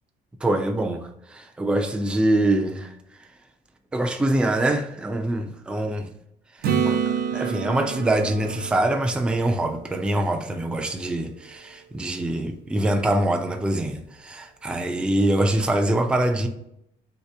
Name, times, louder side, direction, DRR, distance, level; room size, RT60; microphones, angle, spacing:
voice 1, 0.4-2.9 3.9-6.1 6.8-7.0 7.3-16.5, right 1 dB, 5° right, 0.4 m, -24 dB
Acoustic guitar / Strum, 6.6-10.4 15.2-15.3, right 7 dB, 65° right, 0.5 m, -28 dB
2.8 x 2.8 x 3.3 m
cardioid pair, 110°, 17 cm